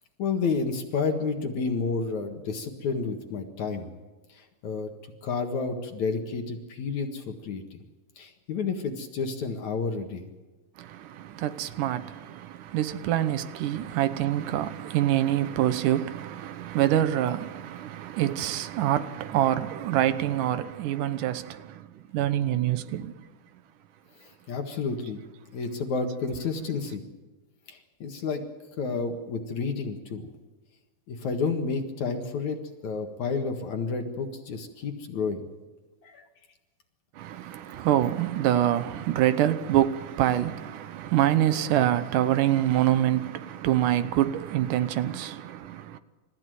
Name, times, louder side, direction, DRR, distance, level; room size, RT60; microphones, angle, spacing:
voice 1, 0.2-3.9 4.3-4.9 5.2-7.8 8.2-10.2 13.8-13.9 24.5-25.2 25.5-27.0 27.7-28.4 28.8-30.3 31.1-35.4 36.0-36.2, left 4 dB, 55° left, 2.7 m, -30 dB
voice 2, 10.8-23.3 37.2-46.0, right 12 dB, 70° right, 2.2 m, -26 dB
28.5 x 15.0 x 9.3 m
omnidirectional pair, 4.6 m